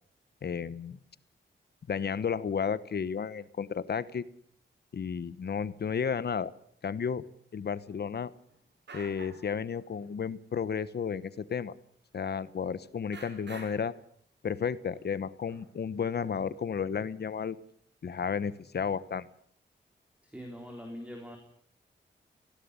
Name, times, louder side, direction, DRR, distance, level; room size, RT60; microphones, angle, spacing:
voice 1, 0.4-1.0 1.9-4.2 4.9-6.5 6.8-7.2 7.5-8.3 8.9-11.7 12.1-13.9 14.4-17.6 18.0-19.3, left 6 dB, 60° left, 15 dB, 1.1 m, -32 dB
sound 1, 8.5-8.6 8.9-9.5 9.7-10.2 10.8-10.9 11.3-11.4 12.7-12.8 13.1-13.9 14.9-15.0 15.5-16.3, right 3 dB, 70° right, 6.1 m, -49 dB
voice 2, 20.2-21.4, equal, 5° right, 3 dB, 3.8 m, -43 dB
18.5 x 17.0 x 9.7 m, 0.63 s
wide cardioid pair, 135°, 19 cm